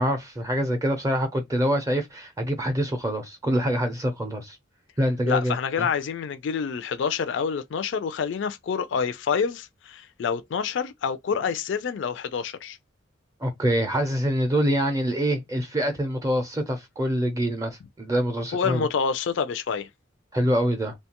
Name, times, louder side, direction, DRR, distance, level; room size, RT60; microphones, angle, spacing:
voice 1, 0.0-4.6 5.0-5.9 13.4-18.9 20.3-20.9, equal, 15° right, 0.5 m, -25 dB
voice 2, 5.3-12.8 18.5-19.9, left 6 dB, 65° left, 0.4 m, -27 dB
2.8 x 2.2 x 2.8 m
head